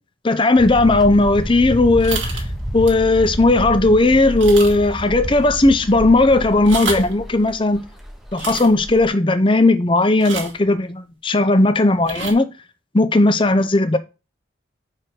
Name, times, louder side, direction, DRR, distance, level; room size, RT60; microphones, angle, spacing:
voice 1, 0.2-2.4 2.7-7.8 8.3-12.5 12.9-14.0, left 2 dB, 25° left, 0.6 m, -16 dB
sound 1, 0.6-9.1, equal, ahead, 1.0 m, -29 dB
sound 2, 2.0-2.5 2.9-3.1 3.5-3.6 4.4-5.0 5.2-5.3 6.5-7.1 8.3-8.7 10.2-10.6 12.0-12.3, right 4 dB, 75° right, 2.2 m, -29 dB
4.9 x 4.8 x 6.0 m
head